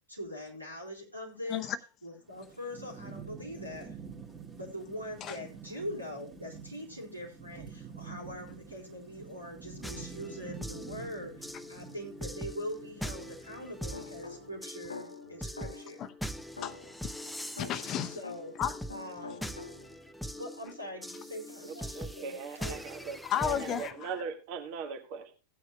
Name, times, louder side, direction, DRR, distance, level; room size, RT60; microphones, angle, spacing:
voice 1, 0.1-1.7 2.0-4.0 4.5-16.0 18.1-18.6 18.9-19.4 20.3-22.8, left 1 dB, 90° right, 4.1 m, -42 dB
Thunderstorm / Rain, 2.3-14.5, right 6 dB, 25° right, 2.1 m, -48 dB
sound 1, 9.8-23.9, equal, ahead, 0.6 m, -42 dB
sound 2, 13.9-16.1 16.6-18.6 18.9-20.1, left 4 dB, 80° left, 0.8 m, -47 dB
voice 2, 16.6-17.1 17.6-18.2 18.6-18.8 23.2-24.1, left 10 dB, 35° left, 0.8 m, -33 dB
voice 3, 21.6-25.3, right 6 dB, 45° right, 1.6 m, -40 dB
17.0 x 9.2 x 2.3 m
figure-of-eight pair, 90°, 0 cm